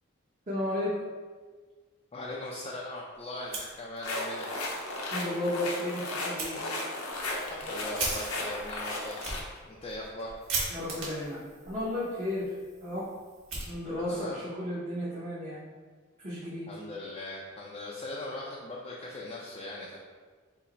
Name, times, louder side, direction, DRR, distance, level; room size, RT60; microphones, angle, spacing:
voice 1, 0.5-1.0 5.1-6.6 10.7-12.5 12.8-13.0 13.6-15.6 16.2-16.7, left 1 dB, 30° right, -10 dB, 0.9 m, -33 dB
voice 2, 2.1-4.6 7.4-9.4 9.6-10.4 13.9-14.4 16.7-20.0, left 1 dB, 30° left, -4 dB, 0.4 m, -40 dB
Fire, 3.4-4.3 4.6-4.7 5.1-5.2 6.4-6.5 7.1-14.2, right 3 dB, 70° right, 1.4 m, -39 dB
sound 1, 4.0-9.4, left 2 dB, 85° left, 0.8 m, -35 dB
5.6 x 2.1 x 3.9 m, 1.5 s
head